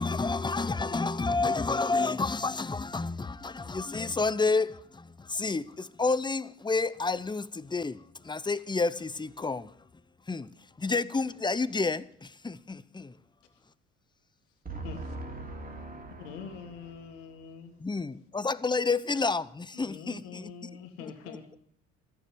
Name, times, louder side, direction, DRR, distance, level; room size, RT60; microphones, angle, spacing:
voice 1, 0.0-9.8 10.3-10.5 10.8-13.2 17.8-20.5, left 3 dB, 10° left, 0.7 m, -30 dB
voice 2, 14.6-17.7, right 2 dB, 25° right, 3.0 m, -42 dB
voice 3, 16.2-17.7 19.7-21.6, left 6 dB, 85° left, 1.8 m, -44 dB
14.0 x 7.0 x 9.6 m
hypercardioid pair, 65°, 36 cm